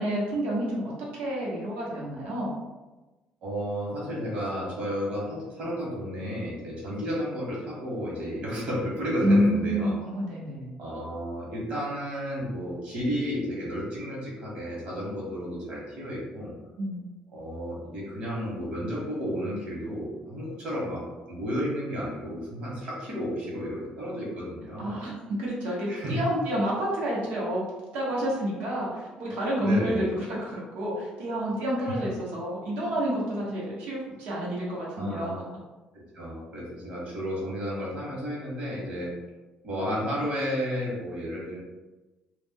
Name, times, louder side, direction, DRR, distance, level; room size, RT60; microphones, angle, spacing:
voice 1, 0.0-2.5 9.2-10.7 16.8-17.0 24.8-25.1 25.4-27.6 27.9-35.3, equal, 80° right, -5 dB, 1.0 m, -29 dB
voice 2, 3.4-9.9 10.8-16.5 17.3-21.0 21.3-25.0 25.9-26.2 29.6-30.2 31.8-32.0 35.0-35.4 35.9-39.1 39.6-41.6, equal, 50° right, -5 dB, 1.2 m, -32 dB
2.4 x 2.0 x 3.5 m, 1.2 s
cardioid pair, 145°, 3 cm